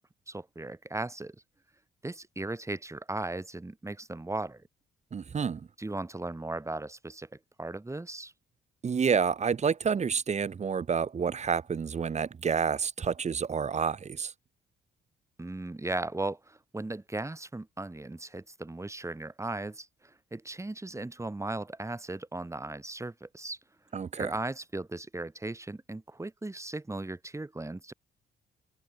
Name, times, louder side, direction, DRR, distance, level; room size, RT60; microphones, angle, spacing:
voice 1, 0.3-1.4 2.0-4.7 5.8-8.3 15.4-23.6 24.2-27.9, right 2 dB, 15° right, 4.6 m, -37 dB
voice 2, 5.1-5.7 8.8-14.3 23.9-24.3, right 6 dB, 35° right, 1.0 m, -29 dB
cardioid pair, 90°, 20 cm